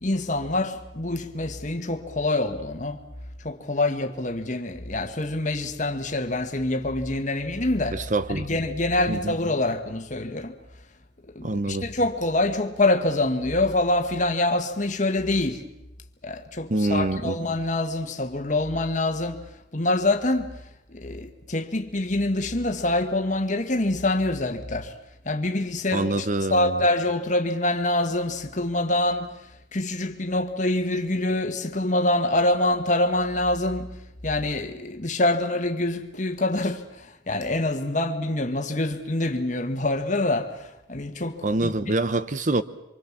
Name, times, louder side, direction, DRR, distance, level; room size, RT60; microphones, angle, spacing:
voice 1, 0.0-3.0 3.4-8.0 8.3-10.5 11.4-15.6 16.2-19.4 19.7-20.5 20.9-24.9 25.3-29.4 29.7-34.0 34.2-41.7, left 2 dB, 40° left, 1.8 m, -25 dB
voice 2, 7.9-8.5 9.1-9.3 11.4-11.9 16.7-17.4 25.9-26.8 41.4-42.6, right 2 dB, 40° right, 0.8 m, -25 dB
26.0 x 24.5 x 7.4 m
head